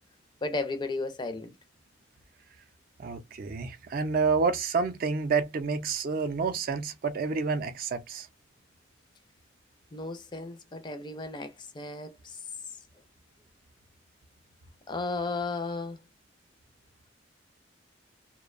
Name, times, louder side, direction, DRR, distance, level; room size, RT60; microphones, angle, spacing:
voice 1, 0.4-1.5 9.9-12.1 14.9-16.0, left 3 dB, 25° left, 0.4 m, -34 dB
voice 2, 3.0-8.3, right 4 dB, 45° right, 0.4 m, -29 dB
2.5 x 2.1 x 2.4 m
head